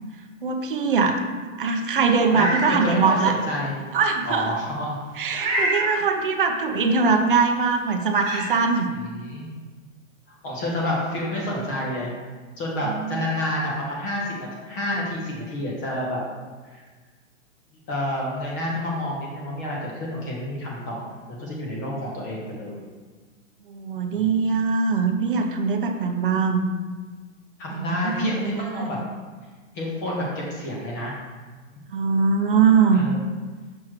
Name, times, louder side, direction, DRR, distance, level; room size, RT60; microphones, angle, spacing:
voice 1, 0.4-1.2 1.6-3.4 3.9-4.5 5.2-8.9 12.9-13.3 23.7-26.6 27.7-28.9 31.9-33.0, right 5 dB, 40° right, 4 dB, 0.6 m, -22 dB
Meow, 2.1-2.7 3.2-3.3 5.3-5.9 7.5-7.6 8.2-8.5, right 2 dB, 15° right, 1.5 m, -25 dB
voice 2, 2.3-3.7 4.2-5.0 9.0-9.5 10.3-12.1 12.6-16.2 16.6-16.8 17.9-22.8 24.1-24.3 27.6-29.0 29.7-31.1 32.9-33.2, left 1 dB, 15° left, -4 dB, 0.6 m, -29 dB
6.2 x 3.1 x 5.8 m, 1.4 s
hypercardioid pair, 160°, 40 cm